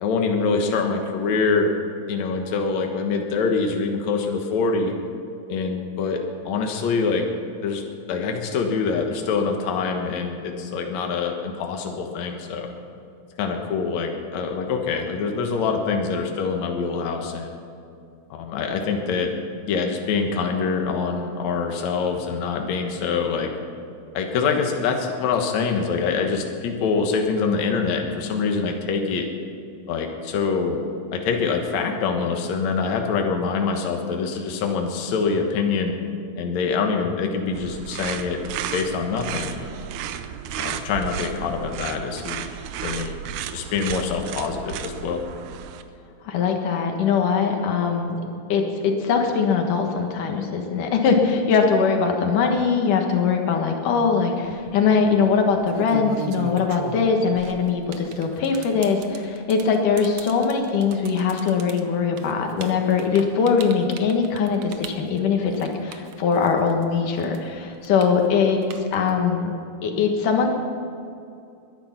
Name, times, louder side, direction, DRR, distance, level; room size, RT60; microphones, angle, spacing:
voice 1, 0.0-1.7 2.1-4.9 5.5-7.2 7.6-7.8 8.1-12.7 13.4-17.6 18.3-19.3 19.6-23.5 24.1-29.3 29.9-30.8 31.1-35.9 36.4-38.4 38.7-39.8 40.6-42.5 42.8-43.1 43.5-45.2, left 5 dB, 65° left, 3 dB, 2.6 m, -25 dB
sound 1, 37.5-45.8, right 9 dB, 85° right, 2.3 m, -33 dB
voice 2, 46.2-48.2 48.5-69.5 69.8-70.5, left 5 dB, 85° left, 3 dB, 3.1 m, -21 dB
sound 2, 54.4-54.7 55.5-66.8 67.2-69.2, right 7 dB, 65° right, 1.5 m, -38 dB
21.5 x 10.5 x 5.9 m, 2.5 s
omnidirectional pair, 3.6 m